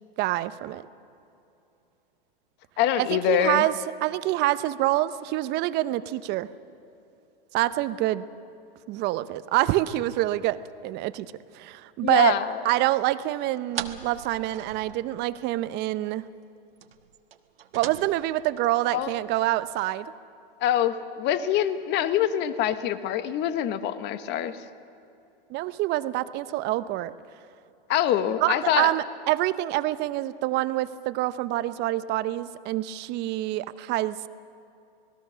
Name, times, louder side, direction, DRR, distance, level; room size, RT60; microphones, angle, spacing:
voice 1, 0.2-0.8 3.0-3.7 4.0-6.5 7.5-8.2 8.9-11.3 11.5-12.4 12.6-16.2 17.7-20.1 25.5-27.1 28.4-34.2, right 16 dB, 35° right, 14 dB, 0.8 m, -26 dB
voice 2, 2.8-3.6 12.0-12.6 18.9-19.1 20.6-24.6 27.9-28.9, left 11 dB, 35° left, 12 dB, 1.2 m, -25 dB
sound 1, 13.7-15.5 15.8-15.9 16.1-16.2 16.8-19.8, right 9 dB, 85° right, 1.4 m, -41 dB
26.5 x 19.5 x 6.3 m, 2.7 s
hypercardioid pair, 115°, 29 cm